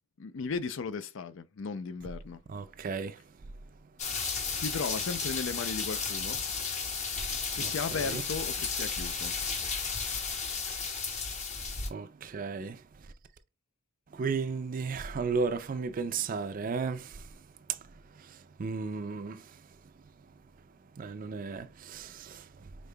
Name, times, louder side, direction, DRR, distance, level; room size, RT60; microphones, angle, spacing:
voice 1, 0.2-2.4 4.5-6.4 7.5-9.3, left 5 dB, 65° left, 0.4 m, -36 dB
voice 2, 2.5-3.2 7.6-7.7 11.9-12.8 14.1-17.2 18.6-19.4 21.0-22.4, right 4 dB, 45° right, 0.4 m, -34 dB
sound 1, 4.0-11.9, left 5 dB, 35° left, 0.8 m, -33 dB
5.2 x 3.6 x 2.2 m
head